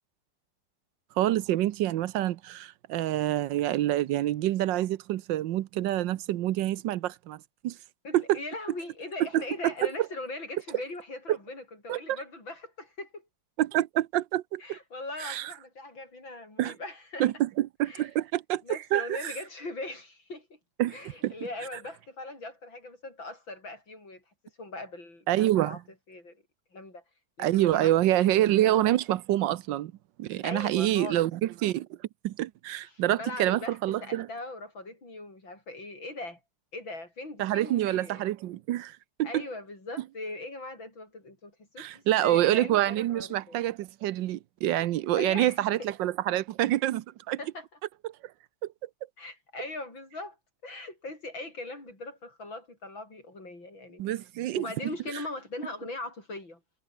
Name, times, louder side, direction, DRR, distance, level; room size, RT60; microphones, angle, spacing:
voice 1, 1.2-7.8 8.1-8.4 9.3-9.7 11.3-11.4 11.9-12.2 13.6-14.8 15.2-15.5 16.6-16.7 17.2-19.3 20.8-21.0 21.2-21.3 25.3-25.8 27.4-29.9 30.2-32.0 32.2-34.3 37.4-39.3 41.8-47.4 48.0-48.1 54.0-54.7, right 14 dB, 75° right, 1.4 m, -27 dB
voice 2, 8.0-13.3 14.6-17.3 17.8-18.1 18.6-20.6 20.9-24.2 24.6-25.8 26.1-26.4 26.7-27.0 27.4-28.7 30.4-31.3 32.8-36.4 36.7-38.3 39.2-43.6 45.2-45.9 47.4-47.7 49.2-50.4 50.6-54.2 54.5-56.6, left 2 dB, 90° left, 8.7 m, -40 dB
omnidirectional pair, 2.1 m